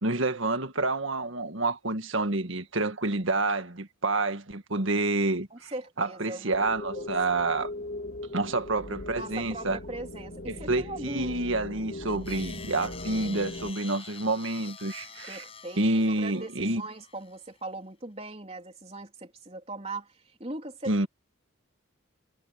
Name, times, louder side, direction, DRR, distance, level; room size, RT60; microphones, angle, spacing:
voice 1, 0.0-5.7 6.0-7.7 8.3-9.8 10.5-15.4 15.8-16.8 20.9-21.1, right 2 dB, 70° right, 1.8 m, -28 dB
voice 2, 5.5-7.1 9.2-11.4 15.3-21.1, right 2 dB, 30° right, 3.7 m, -40 dB
sound 1, 6.5-13.7, left 1 dB, 50° left, 3.0 m, -39 dB
sound 2, 12.1-17.4, left 6 dB, 25° left, 7.7 m, -46 dB
head